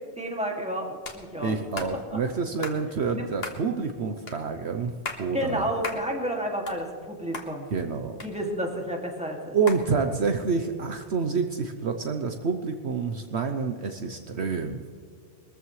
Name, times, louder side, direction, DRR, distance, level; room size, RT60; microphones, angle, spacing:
voice 1, 0.2-1.6 1.9-2.2 3.1-3.3 5.3-7.7 8.2-9.6, equal, 5° right, 0 dB, 2.2 m, -31 dB
sound 1, 1.0-1.2 1.8-1.9 2.6-2.8 3.4-3.6 4.3-4.4 4.9-5.3 5.8-6.0 6.4-7.1 7.3-7.5 8.2-8.8 9.7-9.9, left 3 dB, 55° left, 1.7 m, -36 dB
voice 2, 1.4-5.7 7.7-8.2 9.5-14.8, right 5 dB, 65° right, 6 dB, 1.1 m, -28 dB
21.5 x 14.5 x 3.2 m, 2.1 s
omnidirectional pair, 1.3 m